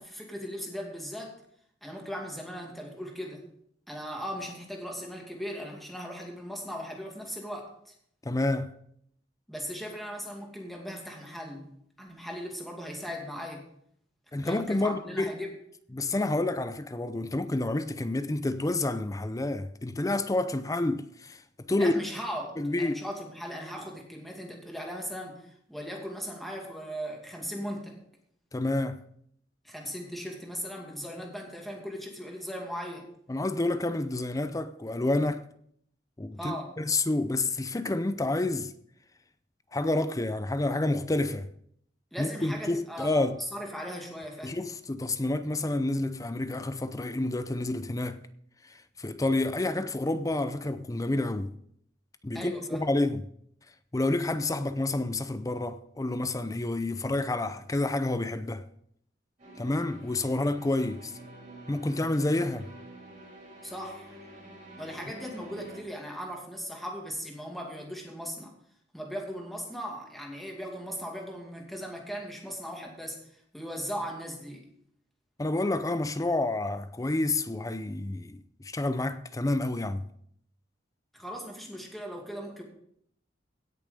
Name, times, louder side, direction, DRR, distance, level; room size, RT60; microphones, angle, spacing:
voice 1, 0.0-1.3 1.8-3.4 3.9-7.9 9.5-11.7 12.0-13.6 14.4-15.5 21.8-28.0 29.6-33.1 36.4-36.7 42.1-44.6 52.3-52.8 63.6-64.2 64.8-68.5 68.9-74.6 81.1-82.6, equal, ahead, 2.4 m, -38 dB
voice 2, 8.2-8.7 14.3-15.3 15.9-21.4 21.7-21.9 22.6-23.0 28.5-29.0 33.3-35.4 36.2-38.7 39.7-41.5 42.2-43.4 44.4-48.2 48.7-51.5 52.2-53.3 53.9-58.7 59.6-61.1 61.7-62.7 75.4-80.0, left 2 dB, 20° left, 0.5 m, -29 dB
sound 1, 59.4-65.8, right 1 dB, 40° right, 6.4 m, -48 dB
17.0 x 6.9 x 5.2 m
head